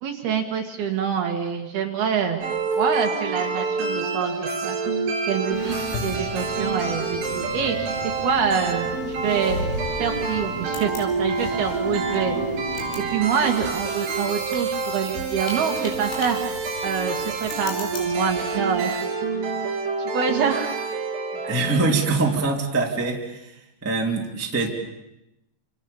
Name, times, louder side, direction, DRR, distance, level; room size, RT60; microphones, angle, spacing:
voice 1, 0.0-2.5 2.8-4.8 5.3-5.8 6.0-8.0 8.2-9.6 10.0-12.3 13.1-16.4 16.8-19.0 19.6-19.7 20.0-20.8 21.4-21.6, right 7 dB, 60° right, 4 dB, 3.3 m, -26 dB
sound 1, 2.4-22.3, right 4 dB, 75° right, 6.2 m, -28 dB
sound 2, 5.5-13.1, left 2 dB, 50° left, 8.7 m, -34 dB
sound 3, 8.8-18.8, left 3 dB, 85° left, 7.3 m, -42 dB
voice 2, 21.5-23.6 23.8-24.7, right 3 dB, 5° right, 0 dB, 1.9 m, -23 dB
29.0 x 28.0 x 7.2 m, 0.87 s
omnidirectional pair, 5.8 m